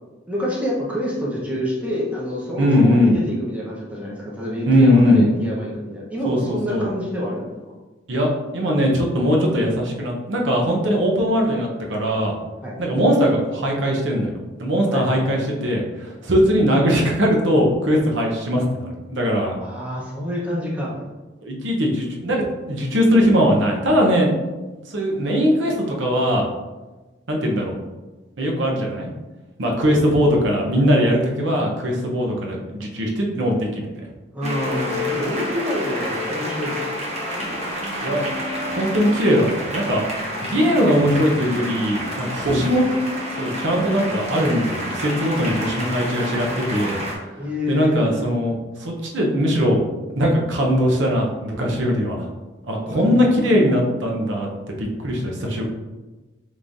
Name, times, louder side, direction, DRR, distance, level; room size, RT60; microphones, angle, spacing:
voice 1, 0.3-7.5 12.6-12.8 14.9-15.2 19.6-20.9 34.3-37.0 47.4-48.1 52.8-53.8, equal, 10° right, -5 dB, 1.0 m, -27 dB
voice 2, 2.6-3.2 4.7-5.3 6.3-6.9 8.1-12.3 12.8-14.3 14.6-19.5 21.4-22.4 22.7-24.3 24.9-26.5 27.3-27.7 28.4-29.1 29.6-34.0 38.0-38.2 38.7-40.0 40.4-42.9 43.4-47.0 47.7-49.8 50.1-52.2 52.7-55.6, equal, 80° right, -1 dB, 0.9 m, -20 dB
sound 1, 34.4-47.1, equal, 35° right, 0.9 m, -29 dB
5.5 x 3.2 x 2.6 m, 1.2 s
head